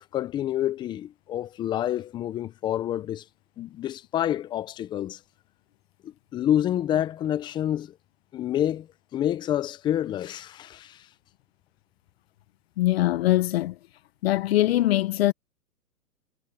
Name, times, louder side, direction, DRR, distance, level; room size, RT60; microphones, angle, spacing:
voice 1, 0.0-3.2 3.6-5.2 6.0-7.9 8.3-8.9 9.1-11.0, left 11 dB, 10° left, 0.7 m, -28 dB
voice 2, 12.8-13.7 14.2-15.3, left 15 dB, 40° left, 1.3 m, -22 dB
hypercardioid pair, 135°, 49 cm